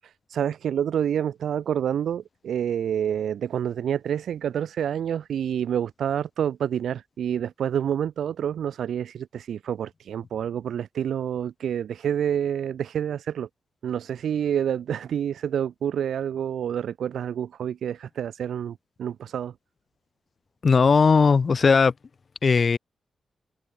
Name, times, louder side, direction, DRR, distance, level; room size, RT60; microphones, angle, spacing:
voice 1, 0.0-13.5 13.8-19.5, right 9 dB, 85° right, 1.7 m, -28 dB
voice 2, 20.6-21.9 22.4-22.8, left 5 dB, 55° left, 4.3 m, -18 dB
cardioid pair, 65°, 0 cm